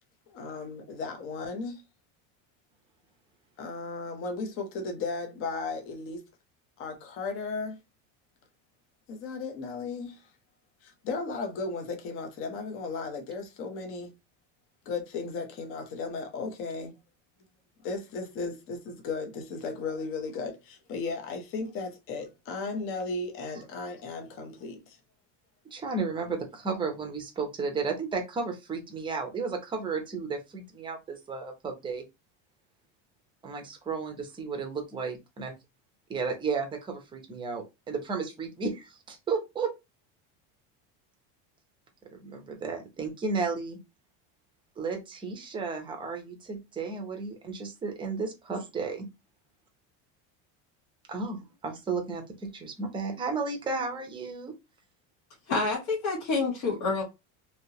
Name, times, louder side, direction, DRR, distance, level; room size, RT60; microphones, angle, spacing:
voice 1, 0.3-1.8 3.6-6.2 6.8-7.8 9.1-10.2 10.8-14.1 14.9-16.9 17.8-25.0, left 4 dB, 40° left, 0.7 m, -35 dB
voice 2, 25.7-32.0 33.4-35.5 36.1-39.7 42.1-43.8 44.8-49.1 51.1-54.5, right 4 dB, 15° right, 0.6 m, -33 dB
voice 3, 55.5-57.0, left 3 dB, 65° left, 1.5 m, -28 dB
3.3 x 2.8 x 2.7 m
cardioid pair, 175°, 35 cm